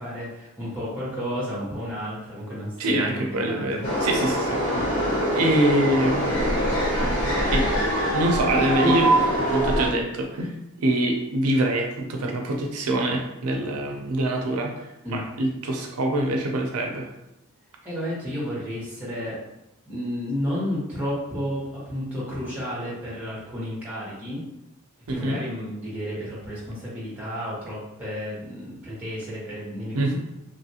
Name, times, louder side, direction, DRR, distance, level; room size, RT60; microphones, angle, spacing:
voice 1, 0.0-3.9 8.8-9.0 15.0-15.2 17.8-19.4 19.9-24.4 25.1-30.2, equal, 5° right, -7 dB, 1.0 m, -32 dB
voice 2, 2.8-5.1 5.3-6.8 7.5-7.7 8.1-9.1 9.5-10.5 10.8-17.1 25.1-25.4 29.9-30.2, right 1 dB, 80° right, 2 dB, 0.4 m, -25 dB
sound 1, 3.8-9.9, right 1 dB, 55° left, 1.0 m, -23 dB
3.0 x 2.4 x 2.7 m, 0.88 s
head